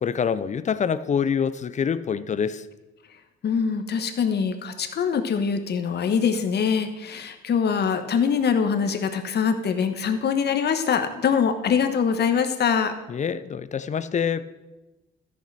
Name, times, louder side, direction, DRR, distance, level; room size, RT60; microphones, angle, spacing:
voice 1, 0.0-2.7 13.1-14.5, left 7 dB, 35° left, 15 dB, 0.6 m, -26 dB
voice 2, 3.4-12.9, left 6 dB, 55° left, 8 dB, 1.2 m, -23 dB
13.5 x 6.8 x 4.7 m, 1.1 s
cardioid pair, 90°, 20 cm